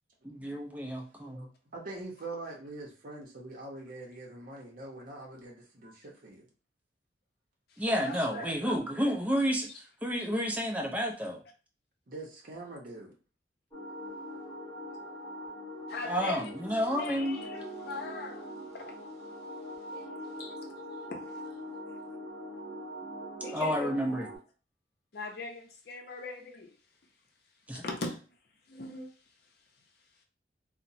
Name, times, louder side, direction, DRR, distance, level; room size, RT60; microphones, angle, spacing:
voice 1, 0.2-1.5 7.8-9.7 10.0-11.4 16.1-17.4 23.5-24.3 27.7-27.8, equal, 10° right, 0.5 m, -30 dB
voice 2, 1.2-6.5 8.3-8.8 12.1-13.1, right 2 dB, 50° right, 0.7 m, -44 dB
voice 3, 7.7-8.5 11.0-11.1 15.9-16.5 17.0-18.5 18.7-19.0 19.9-20.1 20.4-20.7 21.1-21.3 23.4-23.9 25.1-26.7 27.8-28.2 28.7-29.1, left 3 dB, 60° left, 0.6 m, -40 dB
sound 1, 13.7-24.4, equal, 15° left, 1.1 m, -42 dB
2.9 x 2.1 x 2.6 m
head